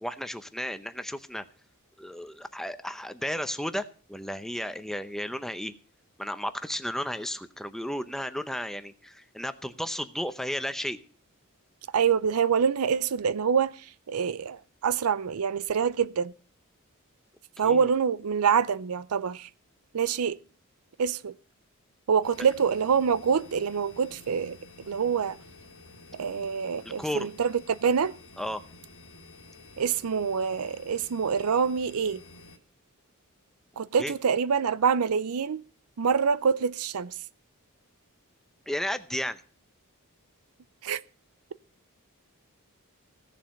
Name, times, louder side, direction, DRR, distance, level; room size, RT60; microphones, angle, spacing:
voice 1, 0.0-1.4 2.0-5.7 6.2-11.0 17.6-17.9 22.4-22.5 26.8-27.3 28.4-28.6 34.0-34.1 38.7-39.4, equal, ahead, 0.7 m, -33 dB
voice 2, 11.9-13.7 14.1-16.3 17.6-19.5 19.9-20.4 21.0-21.3 22.1-24.6 24.9-25.4 26.1-28.1 29.8-32.2 33.8-35.6 36.0-37.1 40.8-41.0, right 6 dB, 80° right, 0.5 m, -26 dB
sound 1, 22.2-32.6, left 2 dB, 65° left, 1.9 m, -51 dB
16.5 x 7.3 x 5.2 m
head